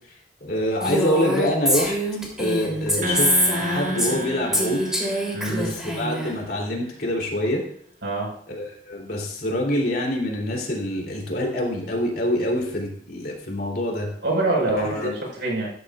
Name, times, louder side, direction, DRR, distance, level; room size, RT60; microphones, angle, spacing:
voice 1, 0.4-2.0 2.4-4.8 5.4-7.6 8.5-14.1 14.8-15.1, left 1 dB, 55° left, 0 dB, 3.2 m, -26 dB
Female speech woman speaking, 0.8-4.2 4.5-6.3, equal, 5° right, 3.2 m, -24 dB
sound 1, 3.0-6.5, equal, 45° right, 1.0 m, -32 dB
voice 2, 5.3-5.7 8.0-8.3 14.2-15.7, right 2 dB, 80° right, -2 dB, 5.1 m, -25 dB
14.0 x 13.0 x 2.5 m, 0.62 s
head